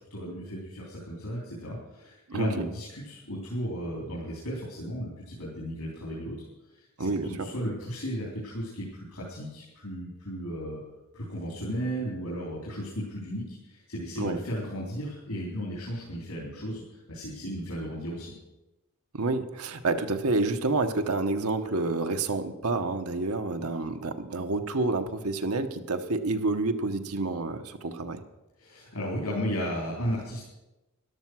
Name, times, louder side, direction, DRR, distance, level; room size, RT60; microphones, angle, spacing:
voice 1, 0.1-6.4 6.7-10.8 11.1-18.3 28.6-30.5, equal, 80° left, -4 dB, 3.8 m, -35 dB
voice 2, 2.3-2.6 7.0-7.5 14.2-14.4 19.1-28.2, right 3 dB, 80° right, 6 dB, 1.0 m, -29 dB
13.5 x 11.5 x 6.2 m, 1.0 s
head